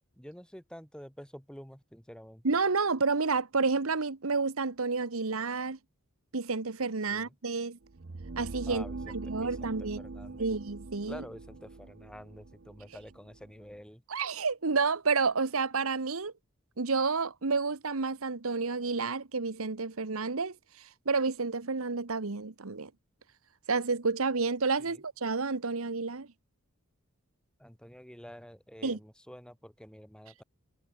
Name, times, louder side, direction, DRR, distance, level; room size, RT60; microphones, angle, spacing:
voice 1, 0.2-2.4 7.1-7.3 8.7-9.7 10.0-10.5 11.0-14.0 24.8-25.0 27.6-30.4, equal, 5° left, 6.3 m, -48 dB
voice 2, 2.4-5.8 6.3-7.8 8.4-8.8 9.1-10.0 10.4-11.2 14.1-16.3 16.8-22.9 23.7-26.3 28.8-29.0, right 4 dB, 75° right, 1.2 m, -30 dB
sound 1, 7.8-13.8, right 3 dB, 55° right, 0.8 m, -43 dB
head